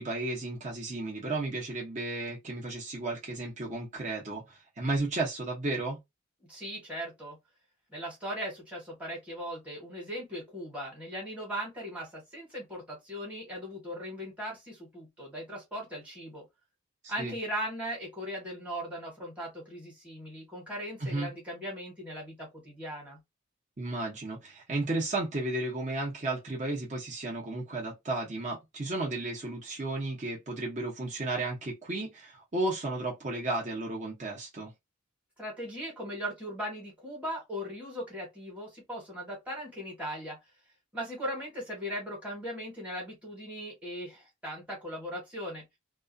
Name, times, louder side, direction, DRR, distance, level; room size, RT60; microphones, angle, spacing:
voice 1, 0.0-6.0 17.0-17.3 21.0-21.3 23.8-34.7, right 2 dB, 35° right, 0.7 m, -33 dB
voice 2, 6.5-7.4 7.9-16.4 17.1-23.2 35.4-40.4 40.9-45.6, equal, 5° right, 1.0 m, -38 dB
2.3 x 2.3 x 2.5 m
head